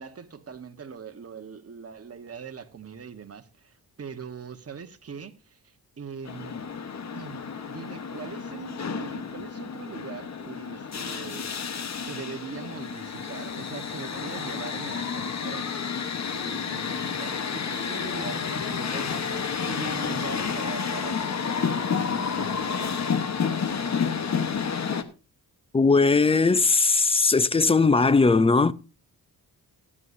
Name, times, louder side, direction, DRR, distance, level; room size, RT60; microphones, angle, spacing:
voice 1, 0.0-6.5 7.1-11.5 12.0-15.7 16.3-23.0, right 6 dB, 40° right, 1.2 m, -41 dB
sound 1, 6.3-25.0, left 6 dB, 45° left, 1.1 m, -30 dB
voice 2, 25.7-28.7, left 4 dB, 15° left, 0.5 m, -19 dB
18.0 x 9.9 x 2.6 m
cardioid pair, 100°, 39 cm